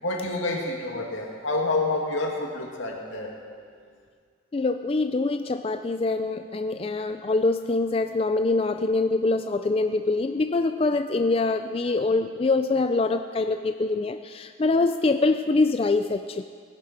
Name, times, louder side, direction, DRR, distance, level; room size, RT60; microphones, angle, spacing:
voice 1, 0.0-3.3, left 2 dB, 85° left, 0 dB, 2.2 m, -28 dB
voice 2, 4.5-16.4, left 3 dB, 30° left, 8 dB, 0.3 m, -24 dB
19.5 x 11.0 x 4.3 m, 2.1 s
head